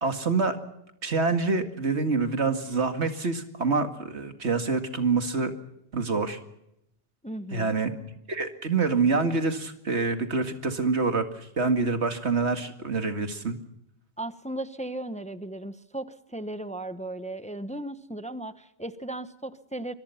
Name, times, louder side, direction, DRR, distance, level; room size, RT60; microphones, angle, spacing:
voice 1, 0.0-0.6 1.0-5.5 5.9-6.4 7.5-7.9 8.3-13.6, right 4 dB, 80° right, 7 dB, 2.4 m, -26 dB
voice 2, 7.2-7.8 14.2-19.9, right 1 dB, 5° left, 12 dB, 0.9 m, -36 dB
25.0 x 23.0 x 5.8 m, 0.81 s
omnidirectional pair, 1.1 m